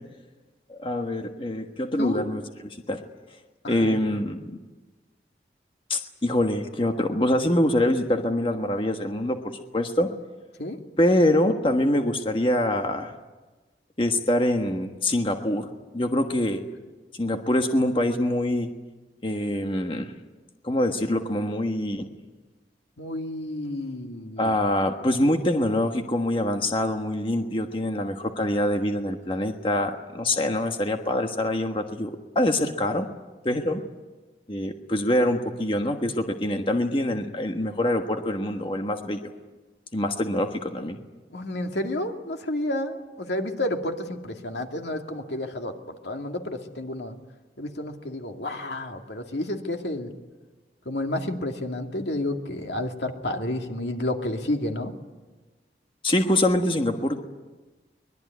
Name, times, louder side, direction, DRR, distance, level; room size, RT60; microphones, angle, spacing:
voice 1, 0.7-2.4 2.9-3.0 3.7-4.4 5.9-10.1 11.0-13.1 14.0-15.7 15.9-16.6 17.2-18.7 19.2-20.1 20.6-22.1 24.4-33.1 33.4-33.8 34.5-39.3 39.9-41.0 56.0-57.2, left 1 dB, 30° left, 5 dB, 1.4 m, -24 dB
voice 2, 3.6-4.0 10.6-10.8 23.0-24.6 41.3-47.1 47.6-50.1 50.9-54.9, left 1 dB, 85° left, 4 dB, 2.3 m, -30 dB
23.5 x 21.0 x 9.6 m, 1.2 s
head